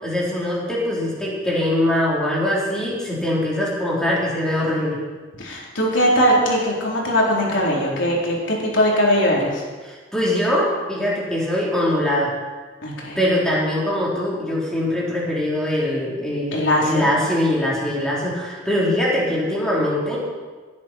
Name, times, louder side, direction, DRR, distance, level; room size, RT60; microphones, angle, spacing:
voice 1, 0.0-5.0 9.8-12.3 13.2-20.2, left 1 dB, 5° left, -6 dB, 3.8 m, -22 dB
voice 2, 5.4-9.6 12.8-13.2 16.5-17.1, equal, 70° left, -3 dB, 3.7 m, -20 dB
18.5 x 10.5 x 4.5 m, 1.4 s
head